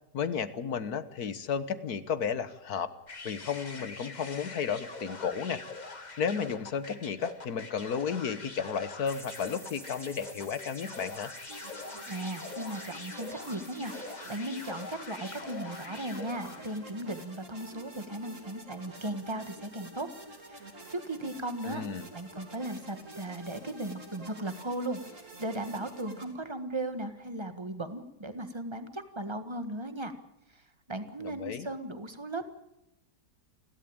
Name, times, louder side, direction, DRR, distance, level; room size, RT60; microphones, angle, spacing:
voice 1, 0.1-2.9 3.2-5.6 6.2-11.3 21.6-22.1 31.2-31.7, left 6 dB, 65° left, 13 dB, 1.7 m, -33 dB
sound 1, 3.1-16.9, left 3 dB, 25° left, 1.5 m, -44 dB
sound 2, 9.1-15.8, equal, ahead, 3.1 m, -50 dB
sound 3, 11.5-26.2, right 2 dB, 45° right, 3.8 m, -48 dB
voice 2, 12.1-20.1 20.5-21.8 22.1-30.1 30.5-32.4, right 1 dB, 15° right, 9 dB, 1.5 m, -37 dB
30.0 x 12.5 x 8.9 m, 0.87 s
omnidirectional pair, 1.8 m